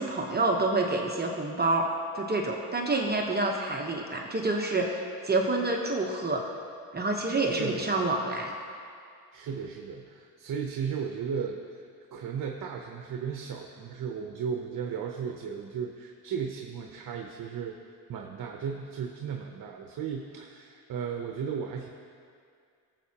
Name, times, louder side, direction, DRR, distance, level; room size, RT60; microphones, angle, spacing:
voice 1, 0.0-1.8 2.1-6.4 6.9-8.5, right 2 dB, 25° right, 0 dB, 1.0 m, -28 dB
voice 2, 7.4-8.1 9.3-11.8 12.1-17.8 18.1-21.9, right 7 dB, 65° right, 3 dB, 0.8 m, -35 dB
17.5 x 7.5 x 2.9 m, 2.3 s
cardioid pair, 90°, 37 cm